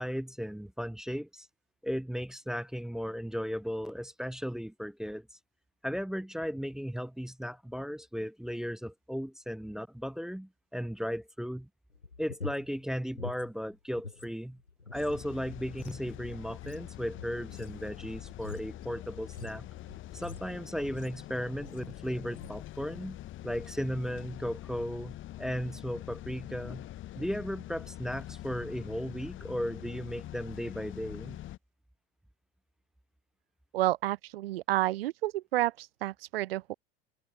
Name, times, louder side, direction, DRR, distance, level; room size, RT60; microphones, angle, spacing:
voice 1, 0.0-1.5 1.8-5.3 5.8-11.7 12.2-14.6 14.9-19.7 20.1-23.2 23.4-26.9 27.2-31.4, equal, ahead, 0.5 m, -36 dB
sound 1, 11.9-14.3 14.6-21.3 21.6-22.0 22.3-22.6, left 4 dB, 90° left, 1.3 m, -46 dB
sound 2, 14.9-31.6, left 14 dB, 40° left, 3.0 m, -44 dB
voice 2, 33.7-36.7, right 15 dB, 60° right, 0.8 m, -30 dB
open air
figure-of-eight pair, 80°, 32 cm